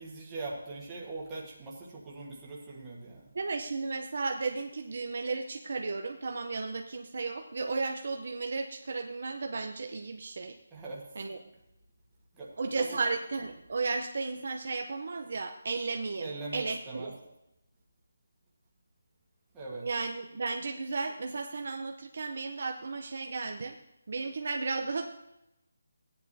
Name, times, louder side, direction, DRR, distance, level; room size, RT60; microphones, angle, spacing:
voice 1, 0.0-3.2 10.7-11.1 12.3-13.0 16.2-17.1 19.5-19.9, right 3 dB, 10° right, -6 dB, 1.4 m, -41 dB
voice 2, 3.3-10.6 11.2-11.4 12.6-17.2 19.8-23.7 24.1-25.0, right 3 dB, 40° right, 4 dB, 0.6 m, -34 dB
15.0 x 10.0 x 2.7 m, 0.89 s
hypercardioid pair, 180°, 0 cm